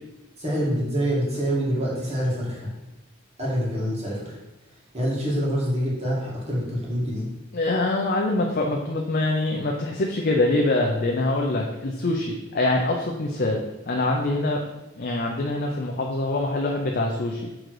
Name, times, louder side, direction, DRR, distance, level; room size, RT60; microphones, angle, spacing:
voice 1, 0.4-2.7 3.4-4.3 4.9-7.3, equal, 30° right, -6 dB, 2.2 m, -26 dB
voice 2, 7.5-14.7 15.0-17.5, left 2 dB, 45° left, 0 dB, 0.6 m, -24 dB
6.2 x 3.9 x 4.8 m, 1.0 s
head